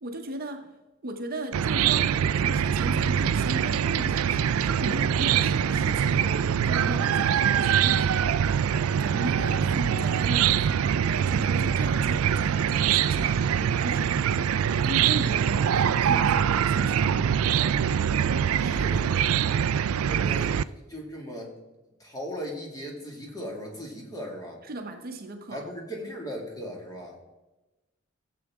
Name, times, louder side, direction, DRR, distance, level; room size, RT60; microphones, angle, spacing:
voice 1, 0.0-0.7 1.0-8.6 9.0-14.3 14.5-17.2 24.7-25.7, right 1 dB, 45° right, 5 dB, 0.9 m, -37 dB
Chicken rooster / Cricket, 1.5-20.6, right 8 dB, 90° right, 0.4 m, -24 dB
voice 2, 18.5-19.2 19.9-20.6 20.8-21.5 22.0-24.6 25.5-27.2, equal, 20° left, -1 dB, 2.1 m, -38 dB
16.0 x 7.8 x 3.6 m, 1.1 s
head